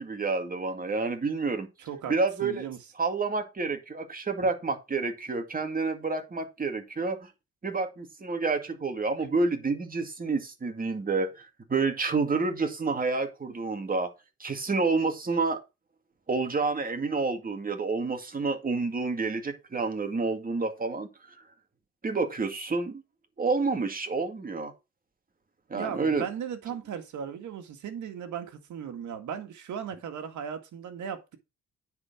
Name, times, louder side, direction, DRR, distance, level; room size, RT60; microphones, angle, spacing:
voice 1, 0.0-1.7 2.1-2.7 3.0-7.3 7.6-14.1 14.4-15.6 16.3-21.1 22.0-23.0 23.4-24.7 25.7-26.2, right 3 dB, 30° right, 2.2 m, -29 dB
voice 2, 1.8-2.1 2.4-2.8 25.7-31.4, right 8 dB, 75° right, 2.0 m, -37 dB
9.6 x 4.6 x 6.1 m
cardioid pair, 90°, 30 cm